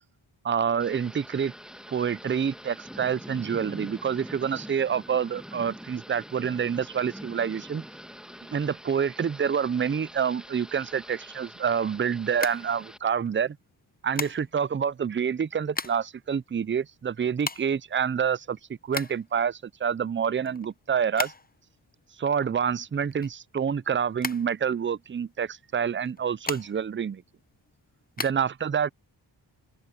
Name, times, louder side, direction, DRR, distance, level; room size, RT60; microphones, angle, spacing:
voice 1, 0.4-1.5 1.9-7.9 8.5-13.6 14.0-21.3 22.2-27.2 28.2-28.9, right 7 dB, 25° right, 0.5 m, -27 dB
Thunder / Rain, 0.8-13.0, equal, ahead, 1.6 m, -45 dB
sound 1, 12.2-13.3 14.1-14.7 15.4-16.2 16.5-16.6 16.8-19.4 19.8-21.7 22.0-23.8 24.2-25.2 26.0-27.0 27.4-28.3, left 3 dB, 20° left, 0.8 m, -36 dB
open air
cardioid pair, 55°, 48 cm